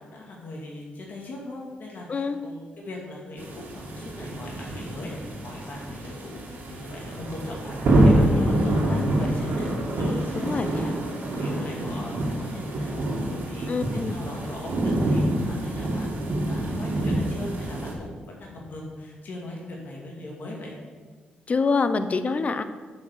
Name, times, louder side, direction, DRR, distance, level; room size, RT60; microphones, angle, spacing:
voice 1, 0.0-13.7 13.9-20.8, left 1 dB, 60° left, -2 dB, 2.1 m, -40 dB
sound 1, 3.4-17.9, right 1 dB, 65° right, 2.0 m, -26 dB
voice 2, 8.3-9.1 10.4-10.9 13.7-14.1 21.5-22.6, left 4 dB, 40° left, 11 dB, 0.7 m, -27 dB
7.3 x 5.7 x 6.9 m, 1.5 s
cardioid pair, 70°, 3 cm